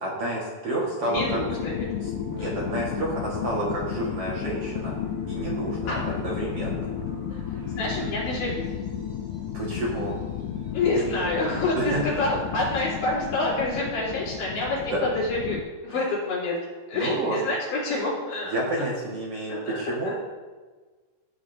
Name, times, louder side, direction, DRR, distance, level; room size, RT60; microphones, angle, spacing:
voice 1, 0.0-1.4 2.0-5.0 5.3-6.9 9.5-10.1 11.8-12.0 14.9-15.0 16.9-17.4 18.5-20.1, right 1 dB, 50° right, -4 dB, 2.2 m, -30 dB
sound 1, 0.7-13.1, right 2 dB, 75° right, 4.6 m, -43 dB
voice 2, 1.0-1.9 2.4-2.7 5.9-6.1 7.3-8.7 10.7-16.6 16.9-18.6 19.5-20.2, left 2 dB, 60° left, -6 dB, 5.1 m, -28 dB
sound 2, 1.1-15.6, left 10 dB, 90° left, 2.5 m, -33 dB
16.5 x 9.6 x 2.7 m, 1.3 s
omnidirectional pair, 4.2 m